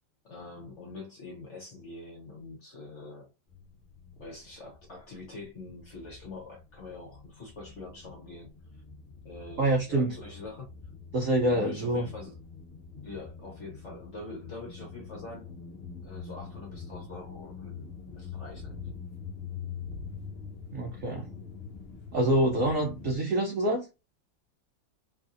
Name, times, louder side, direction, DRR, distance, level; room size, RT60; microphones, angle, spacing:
voice 1, 0.2-3.3 4.2-8.5 9.2-10.7 11.5-12.4 13.0-15.6 16.0-18.8, left 3 dB, 50° left, 0.9 m, -44 dB
sound 1, 3.5-5.1 5.4-23.2, left 5 dB, 80° left, 0.5 m, -44 dB
voice 2, 9.6-10.2 11.1-12.1 20.7-21.3 22.1-23.9, right 1 dB, 75° right, 0.7 m, -26 dB
3.1 x 2.6 x 2.4 m
omnidirectional pair, 2.1 m